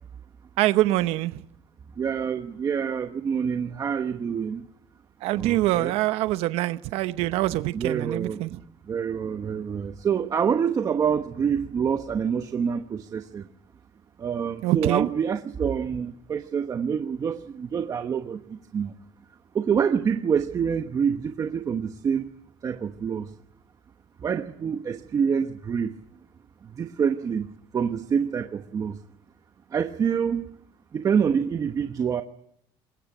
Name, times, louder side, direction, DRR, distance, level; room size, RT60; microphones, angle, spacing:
voice 1, 0.6-1.4 5.2-8.6 14.6-15.1, right 16 dB, 70° right, 0.9 m, -24 dB
voice 2, 2.0-4.7 5.3-5.9 7.7-8.4 8.9-13.5 14.2-18.9 19.5-22.3 22.6-23.3 24.2-25.9 26.6-27.5 27.7-29.0 29.7-30.4 30.9-32.2, right 7 dB, 30° right, 1.1 m, -26 dB
22.0 x 20.0 x 9.1 m
cardioid pair, 125°, 11 cm